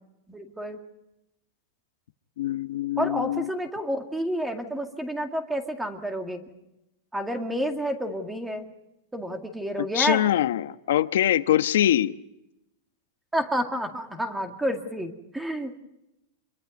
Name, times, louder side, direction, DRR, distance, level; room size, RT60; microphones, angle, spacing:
voice 1, 0.3-0.8 3.0-6.4 7.1-8.7 9.1-10.2 13.3-15.8, equal, 5° right, 5 dB, 2.1 m, -29 dB
voice 2, 2.4-3.5 9.9-12.1, left 12 dB, 75° left, 11 dB, 1.1 m, -23 dB
27.5 x 23.0 x 5.3 m, 0.88 s
supercardioid pair, 160°, 0 cm